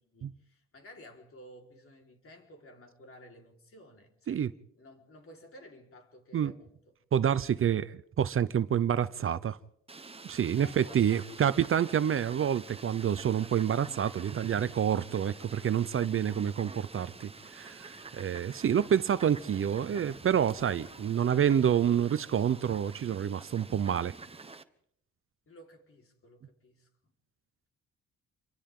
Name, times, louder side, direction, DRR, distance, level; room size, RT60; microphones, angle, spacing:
voice 1, 0.0-4.4 4.8-6.9 10.5-11.9 25.5-26.9, left 1 dB, 45° left, 4.4 m, -53 dB
voice 2, 7.1-9.6 10.2-24.1, right 9 dB, 45° right, 0.7 m, -28 dB
Fowl, 9.9-24.6, right 3 dB, 20° right, 1.2 m, -48 dB
Motorcycle, 16.7-23.4, left 1 dB, 20° left, 8.0 m, -57 dB
28.5 x 24.0 x 3.8 m
cardioid pair, 90°, 30 cm